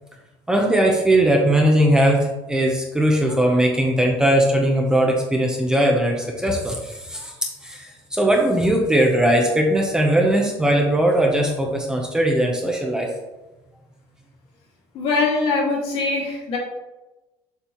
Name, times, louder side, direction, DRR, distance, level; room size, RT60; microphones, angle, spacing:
voice 1, 0.5-13.1, right 1 dB, 5° right, 0 dB, 0.7 m, -19 dB
voice 2, 14.9-16.6, left 3 dB, 60° left, -2 dB, 2.0 m, -22 dB
6.9 x 5.3 x 3.0 m, 1.1 s
cardioid pair, 160°, 11 cm